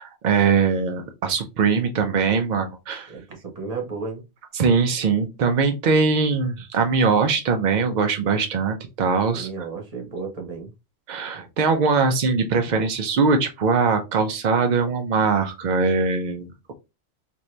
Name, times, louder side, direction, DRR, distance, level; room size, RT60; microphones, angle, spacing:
voice 1, 0.0-3.1 4.5-9.5 11.1-16.7, right 5 dB, 85° right, 6 dB, 0.4 m, -21 dB
voice 2, 3.1-4.2 9.3-10.7, right 4 dB, 30° right, 1 dB, 0.9 m, -33 dB
2.7 x 2.6 x 3.1 m, 0.26 s
omnidirectional pair, 1.4 m